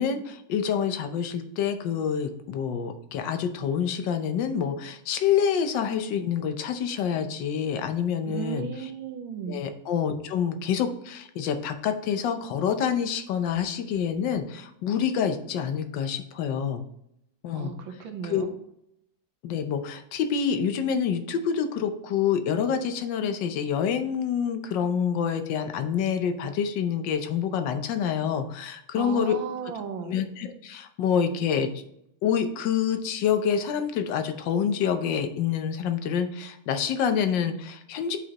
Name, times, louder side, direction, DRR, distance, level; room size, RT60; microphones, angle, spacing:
voice 1, 0.0-8.7 9.5-16.8 17.4-17.7 18.2-18.4 19.4-29.4 30.1-31.7 32.2-38.2, left 7 dB, 70° left, 8 dB, 1.4 m, -27 dB
voice 2, 8.3-9.6 17.5-18.5 28.9-30.2, right 6 dB, 85° right, 6 dB, 1.6 m, -35 dB
7.6 x 5.1 x 2.9 m, 0.77 s
omnidirectional pair, 2.1 m